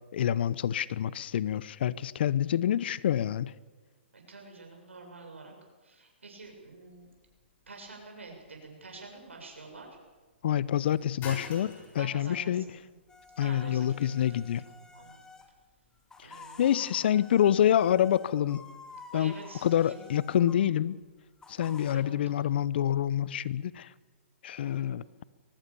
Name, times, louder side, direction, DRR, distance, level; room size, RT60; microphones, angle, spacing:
voice 1, 0.1-3.5 10.4-12.6 13.4-14.6 16.6-18.6 19.1-19.3 19.6-21.0 21.5-23.9 24.4-25.0, left 10 dB, 55° left, 20 dB, 0.9 m, -27 dB
voice 2, 4.1-5.5 5.8-7.1 7.7-10.0 12.0-13.0 13.4-14.2 14.6-15.2 16.2-16.7 19.1-20.0 21.9-22.6 24.6-25.0, right 3 dB, 85° right, 2 dB, 7.5 m, -48 dB
sound 1, 6.4-16.5, left 4 dB, 25° left, 6.2 m, -52 dB
sound 2, 13.1-15.5 16.0-20.6 21.4-22.0, left 3 dB, 10° left, 2.3 m, -51 dB
23.0 x 19.5 x 7.0 m, 1.3 s
hypercardioid pair, 130°, 7 cm